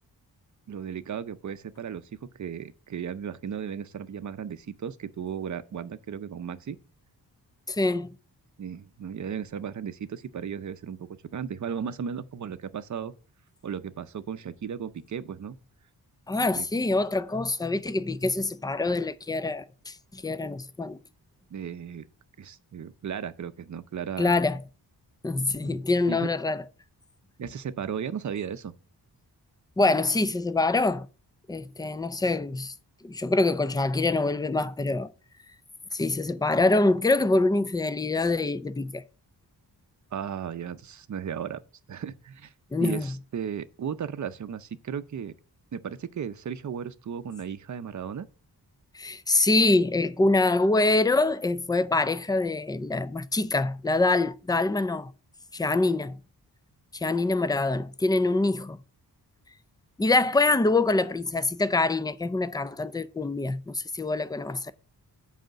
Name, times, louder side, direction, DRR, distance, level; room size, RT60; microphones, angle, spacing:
voice 1, 0.7-2.0 2.4-6.8 8.6-13.1 13.6-15.6 16.6-16.7 21.5-22.0 22.4-24.4 25.6-25.8 26.1-26.3 27.4-28.7 40.1-41.6 41.9-42.5 42.8-45.3 45.7-48.3, right 7 dB, 45° right, 0.6 m, -35 dB
voice 2, 7.7-8.1 16.3-21.0 24.2-24.6 25.2-26.6 29.8-31.1 31.5-32.7 33.0-35.1 35.9-39.0 42.7-43.1 48.9-55.1 55.5-56.2 56.9-58.8 60.0-64.7, left 2 dB, 10° left, 0.3 m, -25 dB
7.9 x 5.0 x 6.2 m
wide cardioid pair, 145°, 40 cm